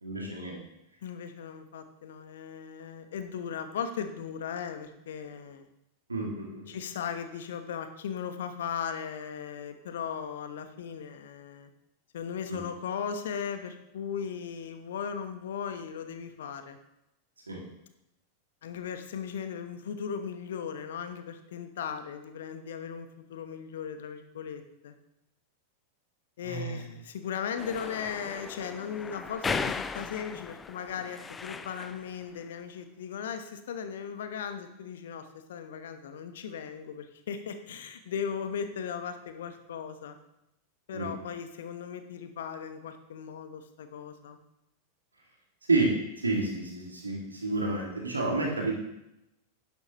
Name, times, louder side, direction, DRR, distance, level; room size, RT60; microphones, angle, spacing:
voice 1, 0.0-0.6 6.1-6.6 12.5-12.6 17.5-17.6 26.4-26.9 40.9-41.1 45.7-45.9 46.2-48.7, right 3 dB, 80° right, -1 dB, 2.2 m, -30 dB
voice 2, 1.0-5.7 6.7-11.7 12.1-16.8 18.6-24.9 26.4-40.2 40.9-44.4, left 7 dB, 60° left, 9 dB, 1.0 m, -37 dB
sound 1, 27.6-32.1, left 4 dB, 15° left, 0.5 m, -37 dB
11.5 x 10.5 x 3.0 m, 0.86 s
figure-of-eight pair, 90°, 0 cm